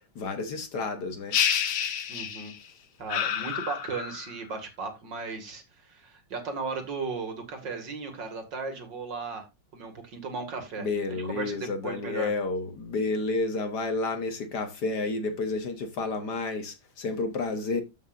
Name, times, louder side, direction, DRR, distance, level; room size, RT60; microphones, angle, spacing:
voice 1, 0.1-1.4 10.8-17.8, left 3 dB, 60° left, 1.7 m, -30 dB
sound 1, 1.3-2.7 3.1-4.4, left 8 dB, 85° left, 1.9 m, -29 dB
voice 2, 2.1-2.5 3.0-9.5 9.7-12.3, right 4 dB, 60° right, 2.6 m, -36 dB
14.0 x 5.6 x 2.6 m
omnidirectional pair, 2.2 m